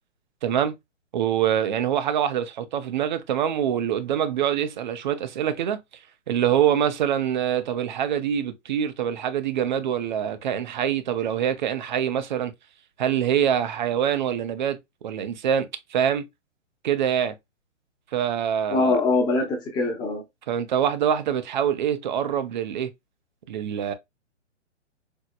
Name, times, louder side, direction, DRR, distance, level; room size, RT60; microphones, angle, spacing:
voice 1, 0.4-0.7 1.1-5.8 6.3-12.5 13.0-14.8 15.0-16.2 16.8-17.3 18.1-19.0 20.5-22.9 23.5-23.9, right 9 dB, 40° right, 0.5 m, -25 dB
voice 2, 18.7-20.2, left 3 dB, 10° left, 0.7 m, -23 dB
4.4 x 2.0 x 2.3 m
hypercardioid pair, 135°, 37 cm